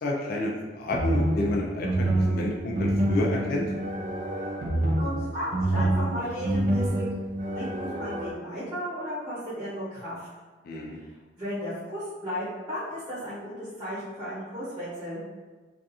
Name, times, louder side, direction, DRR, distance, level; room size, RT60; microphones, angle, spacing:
voice 1, 0.0-3.7 10.6-11.0, left 1 dB, 50° left, -2 dB, 0.3 m, -29 dB
sound 1, 0.9-8.3, right 1 dB, 40° right, 0.3 m, -27 dB
voice 2, 5.0-7.0 7.5-10.2 11.4-15.2, equal, 20° right, -12 dB, 0.9 m, -34 dB
2.4 x 2.4 x 2.7 m, 1.3 s
head